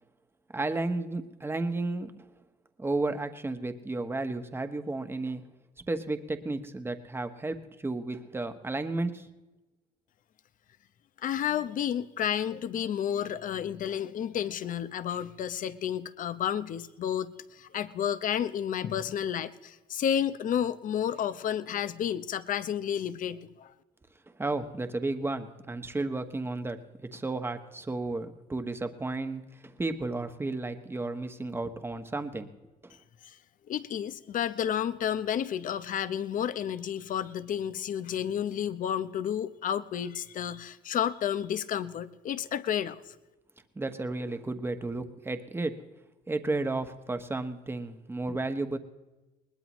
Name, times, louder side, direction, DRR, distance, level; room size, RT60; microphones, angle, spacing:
voice 1, 0.5-2.3 2.8-5.4 5.9-9.3 24.4-32.5 32.8-33.0 43.7-45.7 46.3-48.8, right 2 dB, 15° right, 7 dB, 1.1 m, -33 dB
voice 2, 11.2-23.7 33.2-33.4 33.7-43.1, left 9 dB, 50° left, 13 dB, 0.8 m, -31 dB
21.0 x 19.5 x 3.1 m, 1.1 s
cardioid pair, 110°, 17 cm